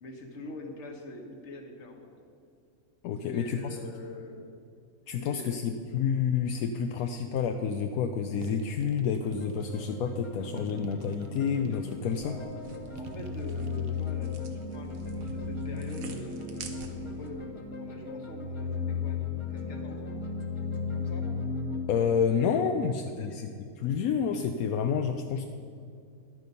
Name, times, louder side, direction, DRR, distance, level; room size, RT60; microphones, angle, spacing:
voice 1, 0.0-2.1 3.2-4.6 5.1-5.8 12.2-12.4 13.0-20.1 20.9-21.2 22.5-23.3, left 2 dB, 50° left, 3 dB, 1.5 m, -44 dB
voice 2, 3.0-3.8 5.1-12.3 21.9-23.5 23.8-25.4, left 7 dB, 80° left, 6 dB, 1.0 m, -29 dB
sound 1, 8.4-10.0 10.6-12.3 12.9-14.0, right 4 dB, 50° right, 0.8 m, -46 dB
sound 2, 9.2-21.8, left 4 dB, 25° left, 0.8 m, -36 dB
sound 3, 12.1-17.3, right 4 dB, 70° right, 1.3 m, -48 dB
11.5 x 9.3 x 5.4 m, 2.3 s
omnidirectional pair, 1.5 m